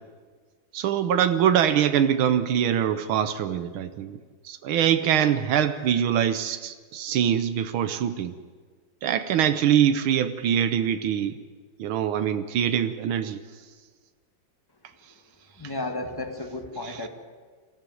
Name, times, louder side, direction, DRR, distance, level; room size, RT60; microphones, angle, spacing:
voice 1, 0.7-4.2 4.4-8.3 9.0-11.4 11.8-13.4 16.8-17.1, right 9 dB, 85° right, 10 dB, 1.7 m, -23 dB
voice 2, 15.6-17.1, left 2 dB, 10° left, 4 dB, 1.7 m, -33 dB
22.0 x 15.0 x 9.4 m, 1.5 s
omnidirectional pair, 2.2 m